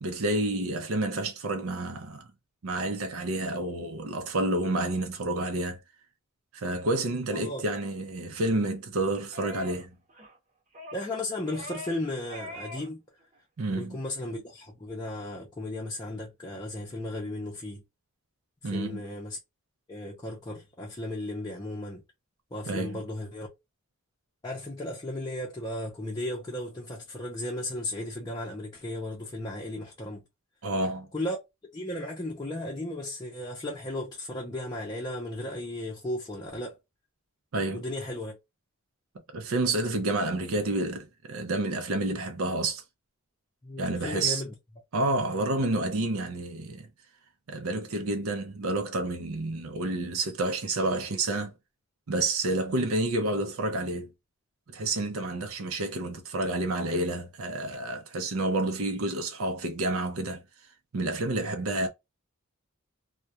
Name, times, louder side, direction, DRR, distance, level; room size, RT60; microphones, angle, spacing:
voice 1, 0.0-2.3 2.6-5.8 6.5-10.0 13.6-14.0 18.6-19.0 22.7-23.0 30.6-31.1 37.5-37.8 39.3-42.8 43.8-44.4 44.9-46.9 47.5-51.5 52.1-54.1 54.7-60.4 60.9-61.9, right 2 dB, 75° right, 0.5 m, -29 dB
voice 2, 7.3-7.6 10.9-13.0 13.7-17.8 18.6-19.4 19.9-22.0 22.5-23.5 24.4-30.2 31.1-31.4 31.7-36.8 37.7-38.3 43.6-44.5, left 1 dB, 20° left, 0.6 m, -35 dB
sound 1, 9.3-9.8 10.1-10.4 10.7-11.1 11.4-12.0 12.3-12.9 13.2-13.4, left 1 dB, 35° right, 0.8 m, -42 dB
2.3 x 2.1 x 2.7 m
head